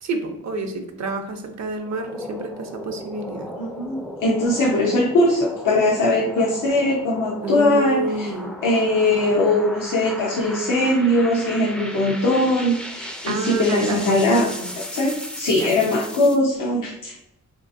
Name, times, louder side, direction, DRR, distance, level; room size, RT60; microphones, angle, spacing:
voice 1, 0.0-3.5 7.4-8.5 13.3-14.7 15.5-15.7, right 2 dB, 60° right, 5 dB, 0.5 m, -29 dB
sound 1, 1.8-16.4, equal, 5° left, 0.3 m, -36 dB
voice 2, 3.6-8.3 8.6-14.5 14.9-17.3, left 1 dB, 80° left, -3 dB, 0.6 m, -20 dB
3.3 x 2.7 x 2.5 m, 0.83 s
wide cardioid pair, 100°, 31 cm